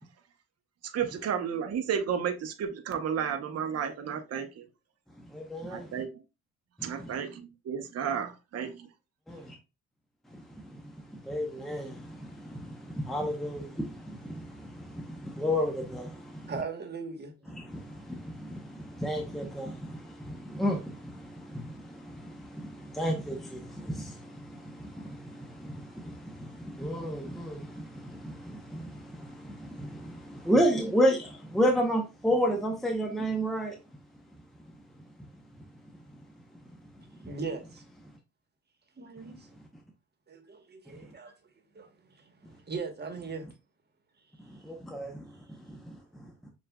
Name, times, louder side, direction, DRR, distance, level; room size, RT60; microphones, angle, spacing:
voice 1, 0.8-4.7 5.7-6.1 6.8-8.9, right 7 dB, 55° right, 0.8 m, -32 dB
voice 2, 5.3-5.9 7.0-7.1 9.3-9.6 10.3-10.4 10.7-10.8 11.1-16.5 17.5-33.8 44.5-45.2 45.7-46.0, equal, ahead, 0.7 m, -32 dB
voice 3, 16.5-17.5 37.3-37.8 39.0-39.6 40.3-41.3 41.7-41.9 42.2-42.3 42.6-43.5, right 4 dB, 35° right, 1.2 m, -38 dB
6.8 x 2.5 x 2.2 m
cardioid pair, 90°, 30 cm